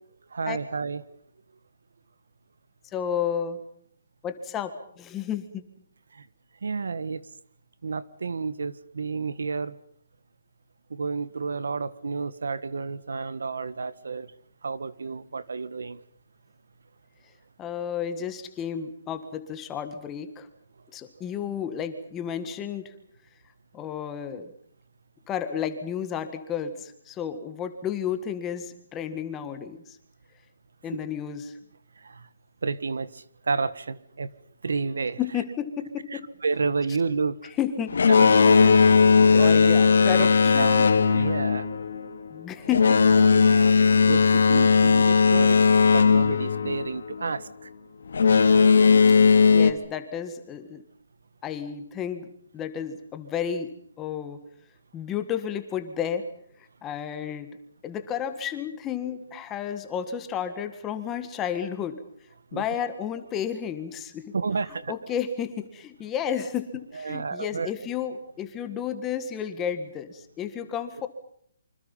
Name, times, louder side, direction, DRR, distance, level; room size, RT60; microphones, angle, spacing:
voice 1, 0.3-1.0 6.6-7.2 7.8-9.8 10.9-14.3 14.6-16.0 30.9-31.0 32.0-32.1 32.6-34.3 34.6-35.2 36.4-37.4 38.2-38.6 39.3-39.5 40.2-40.3 40.6-40.9 41.1-41.7 43.4-45.6 45.9-47.5 62.5-62.6 64.3-64.9 67.0-67.7, right 4 dB, 90° right, 16 dB, 1.7 m, -30 dB
voice 2, 2.9-3.6 4.2-5.6 17.6-20.5 20.9-22.9 23.7-24.5 25.3-29.8 30.8-31.5 35.2-36.2 37.4-37.9 39.3-40.8 41.1-41.2 42.3-43.0 49.5-50.8 51.4-53.7 54.0-54.4 54.9-56.2 56.8-57.5 57.8-62.0 62.5-64.3 64.9-71.1, left 8 dB, 10° left, 9 dB, 1.6 m, -32 dB
Boat Water vehicle, 37.9-47.3 48.1-49.7, left 5 dB, 70° left, 2.6 m, -18 dB
27.0 x 25.5 x 5.6 m, 0.63 s
hypercardioid pair, 175°, 0 cm